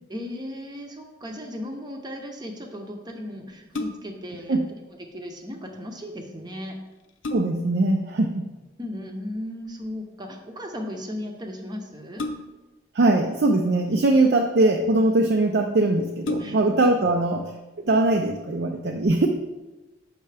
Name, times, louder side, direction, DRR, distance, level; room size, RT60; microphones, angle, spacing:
voice 1, 0.1-4.6 5.0-6.8 8.8-12.3 16.4-16.6 17.0-17.2, left 1 dB, 20° right, 3 dB, 0.7 m, -36 dB
sound 1, 3.5-4.3 6.3-6.4 6.9-7.8 9.3-9.7 12.2-12.8 13.7-14.4 15.2-15.3 15.6-15.7 16.2-16.9 17.3-17.4, left 2 dB, 85° left, 0.6 m, -34 dB
voice 2, 7.3-8.5 12.9-17.5 17.8-19.3, right 2 dB, 55° right, 4 dB, 0.5 m, -21 dB
6.7 x 5.6 x 3.3 m, 1.1 s
head